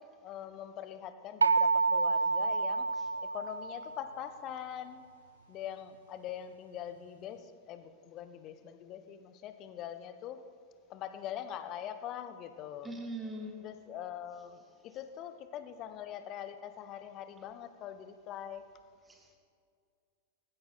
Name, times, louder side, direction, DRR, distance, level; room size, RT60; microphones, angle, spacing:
voice 1, 0.0-2.9 3.3-5.0 5.5-10.4 10.9-12.9 13.6-18.6, left 10 dB, 35° left, 10 dB, 1.1 m, -43 dB
sound 1, 1.4-4.2, right 4 dB, 75° right, 0.5 m, -29 dB
voice 2, 12.8-13.5 19.1-19.4, right 1 dB, 15° right, 2 dB, 2.7 m, -41 dB
18.5 x 15.0 x 4.2 m, 2.2 s
figure-of-eight pair, 90°, 0 cm